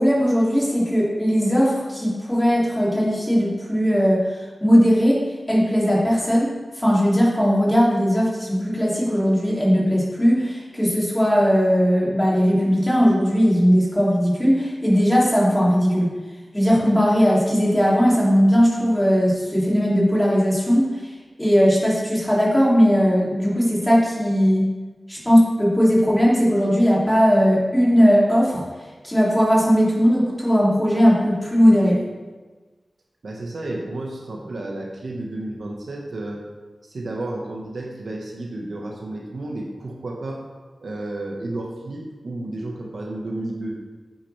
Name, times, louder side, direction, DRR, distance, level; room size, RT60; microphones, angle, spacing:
voice 1, 0.0-4.2 4.6-5.2 5.5-16.1 16.5-21.0 21.4-24.7 25.1-28.6 29.0-32.0, equal, 10° left, -6 dB, 3.0 m, -18 dB
voice 2, 33.2-36.4 36.9-40.4 40.8-43.7, right 2 dB, 75° right, -1 dB, 1.5 m, -32 dB
8.8 x 8.7 x 3.5 m, 1.3 s
wide cardioid pair, 70°, 0 cm